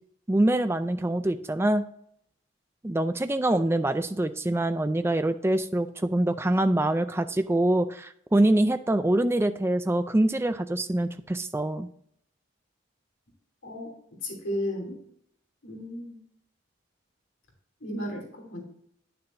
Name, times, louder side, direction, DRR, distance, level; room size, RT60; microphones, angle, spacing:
voice 1, 0.3-1.8 2.8-11.9, right 1 dB, 10° right, 10 dB, 0.4 m, -25 dB
voice 2, 14.2-15.0 15.6-16.2 17.8-18.6, left 1 dB, 70° left, -1 dB, 3.1 m, -34 dB
9.7 x 6.8 x 2.7 m, 0.69 s
head